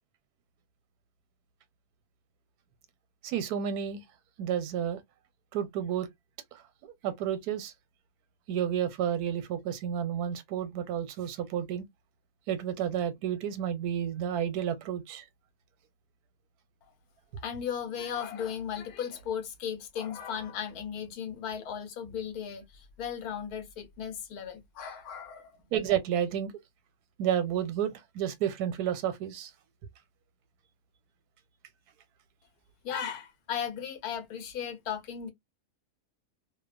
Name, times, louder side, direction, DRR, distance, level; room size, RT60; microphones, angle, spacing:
voice 1, 3.2-4.0 4.4-5.0 5.5-6.1 6.5-7.7 8.5-11.9 12.5-15.2 25.7-26.5 27.2-29.5, right 9 dB, 85° right, 1.1 m, -31 dB
voice 2, 17.4-25.5 32.8-35.3, left 8 dB, 80° left, 1.2 m, -36 dB
2.7 x 2.1 x 2.4 m
omnidirectional pair, 1.6 m